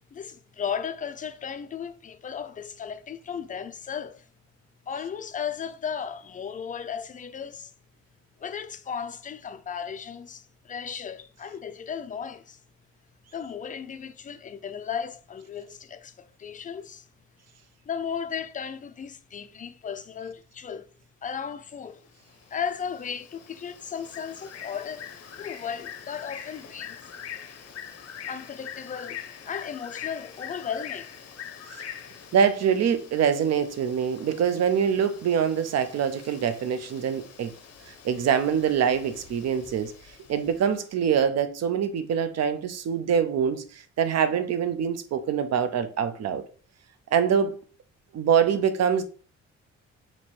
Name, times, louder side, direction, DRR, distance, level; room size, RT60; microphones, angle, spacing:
voice 1, 0.1-4.2 4.9-7.7 8.4-12.6 13.3-17.1 17.9-20.9 21.2-22.0 22.5-25.1 25.3-27.0 28.3-31.1, left 7 dB, 25° left, 0.4 m, -35 dB
Bird, 22.1-40.8, left 8 dB, 55° left, 0.7 m, -44 dB
voice 2, 32.3-37.5 38.0-39.9 40.3-46.4 47.1-47.6 48.1-49.0, right 7 dB, 60° right, 0.7 m, -24 dB
3.0 x 2.9 x 4.4 m
cardioid pair, 90°, 30 cm